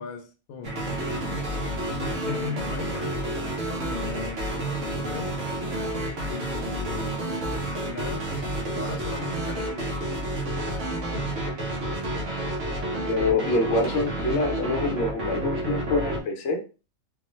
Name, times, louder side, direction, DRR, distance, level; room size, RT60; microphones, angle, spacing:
voice 1, 0.0-1.5 2.0-3.2 3.8-5.4 6.3-7.3 7.8-8.4 8.7-10.0, left 5 dB, 90° left, 1.0 m, -38 dB
sound 1, 0.6-16.2, right 1 dB, 60° right, 1.3 m, -30 dB
voice 2, 13.1-16.6, left 2 dB, 60° left, 1.0 m, -25 dB
3.7 x 2.1 x 3.0 m
omnidirectional pair, 1.4 m